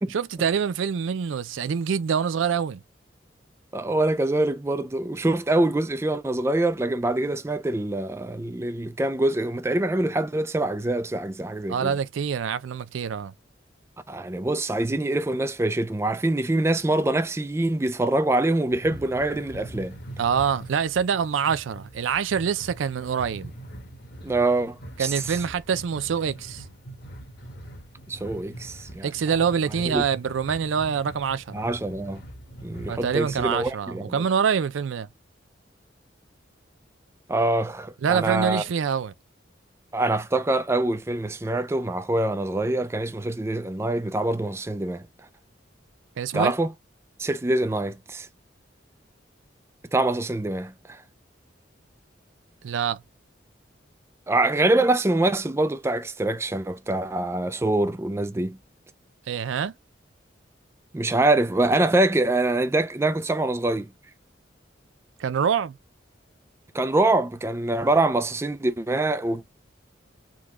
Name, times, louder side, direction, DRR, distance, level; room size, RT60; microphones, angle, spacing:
voice 1, 0.1-2.8 11.7-13.3 20.2-23.5 25.0-26.6 29.0-31.6 32.9-35.1 38.0-39.1 46.2-46.5 52.6-53.0 59.3-59.7 65.2-65.8, right 7 dB, 90° right, 0.4 m, -25 dB
voice 2, 3.7-11.9 14.1-20.0 24.2-25.4 28.1-29.1 29.8-30.0 31.5-32.2 32.6-34.3 37.3-38.6 39.9-45.0 46.3-46.7 47.2-48.3 49.9-51.0 54.3-58.6 60.9-63.9 66.7-69.5, right 2 dB, 15° right, 0.3 m, -24 dB
sound 1, 18.7-33.7, right 1 dB, 55° left, 1.2 m, -42 dB
3.7 x 2.2 x 3.0 m
head